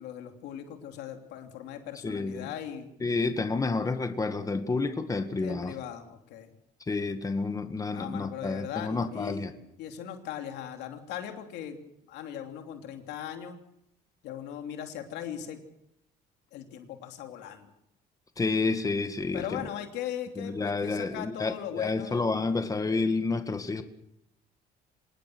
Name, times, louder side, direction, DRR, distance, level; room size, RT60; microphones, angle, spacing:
voice 1, 0.0-2.9 5.4-6.5 7.9-9.5 9.8-11.8 12.1-13.6 14.2-15.6 16.5-17.7 19.3-22.6, left 10 dB, 85° left, 5 dB, 3.1 m, -39 dB
voice 2, 2.0-2.5 3.0-5.8 6.9-9.5 18.4-19.6 20.4-23.8, left 3 dB, 20° left, 8 dB, 1.8 m, -29 dB
26.0 x 19.0 x 6.2 m, 0.78 s
cardioid pair, 110°, 17 cm